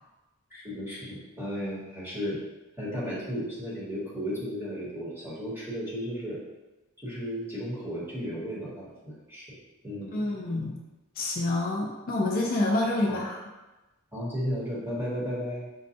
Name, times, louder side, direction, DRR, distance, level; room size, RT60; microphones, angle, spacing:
voice 1, 0.5-2.4 2.8-6.4 7.0-9.6 9.8-10.3 13.1-13.2 14.1-15.7, equal, 10° right, -8 dB, 1.0 m, -34 dB
voice 2, 10.1-10.8 11.2-13.4, left 2 dB, 40° left, 0 dB, 0.3 m, -27 dB
5.1 x 2.2 x 2.7 m, 1.1 s
head